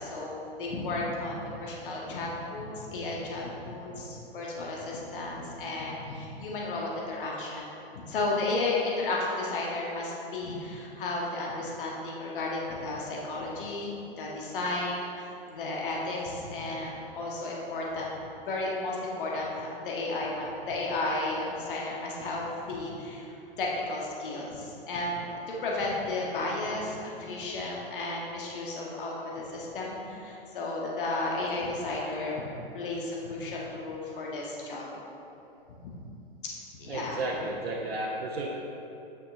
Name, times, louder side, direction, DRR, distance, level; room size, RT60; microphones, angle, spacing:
voice 1, 0.0-7.6 7.9-18.2 18.5-32.4 32.7-34.9 35.8-35.9 36.8-37.2, left 2 dB, 60° left, -3 dB, 1.6 m, -33 dB
voice 2, 36.9-38.5, right 2 dB, 80° right, -2 dB, 1.0 m, -33 dB
8.8 x 6.2 x 3.7 m, 2.9 s
figure-of-eight pair, 110°, 30 cm